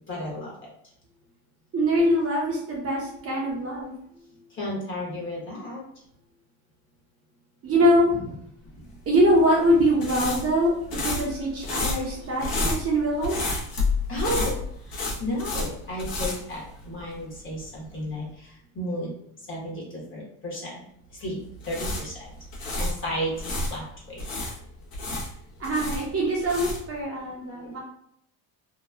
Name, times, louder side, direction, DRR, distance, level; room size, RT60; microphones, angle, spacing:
voice 1, 0.1-0.7 4.5-5.8 8.8-8.9 14.1-20.8 21.1-22.3 22.6-24.3 27.6-27.8, equal, 30° left, -4 dB, 1.1 m, -33 dB
voice 2, 1.7-3.9 7.6-8.4 9.1-13.4 25.6-27.8, equal, 35° right, -3 dB, 0.7 m, -23 dB
sound 1, 9.1-17.2 17.5-17.7 21.4-23.7 24.2-27.0, left 2 dB, 55° left, 1.0 m, -30 dB
3.0 x 2.2 x 2.3 m, 0.72 s
cardioid pair, 125°, 44 cm